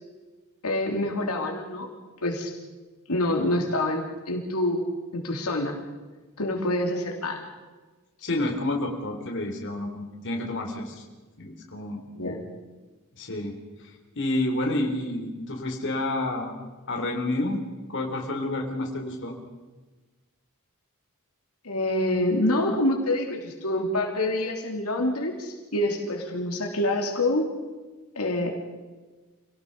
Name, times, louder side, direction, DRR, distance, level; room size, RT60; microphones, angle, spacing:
voice 1, 0.6-1.9 2.2-2.5 3.1-5.8 6.4-7.4 12.1-12.4 21.6-27.5 28.1-28.5, left 1 dB, 90° left, 1 dB, 3.3 m, -26 dB
voice 2, 8.2-11.0 11.4-12.0 13.2-13.5 13.8-16.5 16.9-17.6 17.9-19.4, left 1 dB, 55° left, 2 dB, 3.6 m, -29 dB
27.0 x 18.5 x 5.5 m, 1.3 s
head